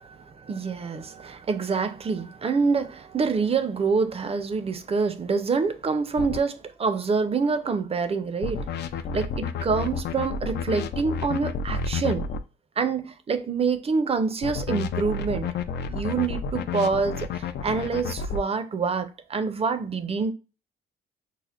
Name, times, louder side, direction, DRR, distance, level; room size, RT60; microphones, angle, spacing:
voice 1, 0.2-8.7 9.1-12.3 12.8-15.5 15.9-20.3, right 5 dB, 30° right, 0.5 m, -26 dB
sound 1, 6.2-6.4 8.4-12.4 14.4-18.4, left 5 dB, 60° left, 0.4 m, -30 dB
5.7 x 2.0 x 2.4 m
cardioid pair, 90°, 20 cm